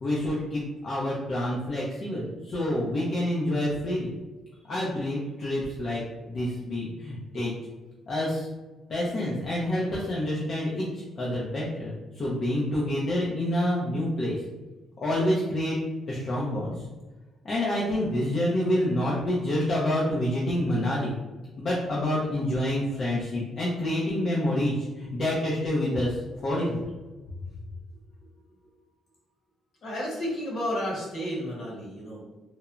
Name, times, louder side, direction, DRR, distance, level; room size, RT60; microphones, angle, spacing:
voice 1, 0.0-4.1 4.7-6.0 6.3-7.5 8.1-8.5 8.9-10.8 11.2-14.4 15.0-15.8 16.1-16.7 17.4-21.1 21.6-26.2 26.4-26.8, left 1 dB, 50° left, -5 dB, 0.5 m, -27 dB
voice 2, 29.8-32.2, equal, 65° left, -4 dB, 1.0 m, -32 dB
3.0 x 2.0 x 2.4 m, 1.2 s
cardioid pair, 90°, 0 cm